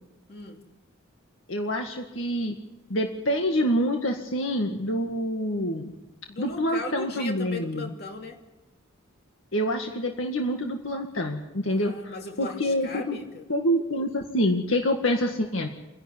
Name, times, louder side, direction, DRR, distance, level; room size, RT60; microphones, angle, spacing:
voice 1, 0.3-0.6 6.3-8.4 11.7-13.5, left 3 dB, 50° left, 2 dB, 2.8 m, -37 dB
voice 2, 1.5-2.6 2.9-5.9 6.4-7.9 9.5-12.1 12.4-13.2 13.5-15.7, equal, 75° left, 3 dB, 2.0 m, -26 dB
28.0 x 11.5 x 9.8 m, 1.0 s
head